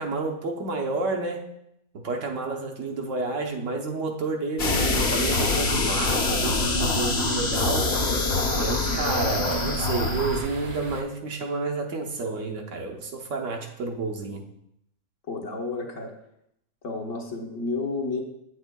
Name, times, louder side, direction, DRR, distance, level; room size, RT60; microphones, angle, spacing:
voice 1, 0.0-1.5 1.9-8.0 8.5-14.4, right 3 dB, 65° right, 2 dB, 1.2 m, -30 dB
sound 1, 4.6-10.4, left 3 dB, 50° left, 1.1 m, -25 dB
sound 2, 5.1-11.0, right 3 dB, 45° right, 0.8 m, -38 dB
voice 2, 15.3-16.1 16.8-18.2, left 3 dB, 65° left, 0 dB, 1.5 m, -31 dB
8.5 x 8.0 x 2.2 m, 0.77 s
omnidirectional pair, 1.5 m